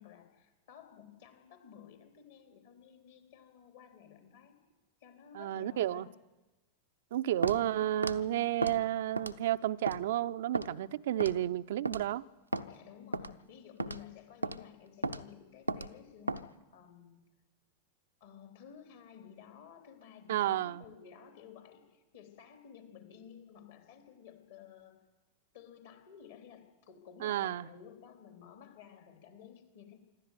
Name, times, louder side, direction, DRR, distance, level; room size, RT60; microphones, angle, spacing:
voice 1, 0.0-4.6 5.0-6.1 12.7-17.2 18.2-25.0 25.5-30.0, left 8 dB, 55° left, 3.5 m, -54 dB
voice 2, 5.3-6.1 7.1-12.3 20.3-20.8 27.2-27.7, right 13 dB, 55° right, 0.6 m, -32 dB
Walk footsteps, 7.4-7.6 8.0-8.2 8.6-8.8 9.2-9.5 9.9-10.0 10.5-10.7 11.2-11.4 11.9-12.1 12.5-12.7 13.1-13.3 13.8-14.0 14.4-14.6 15.0-15.2 15.7-15.9 16.3-16.4, right 2 dB, 85° right, 0.8 m, -34 dB
26.0 x 12.5 x 9.5 m
figure-of-eight pair, 90°, 0 cm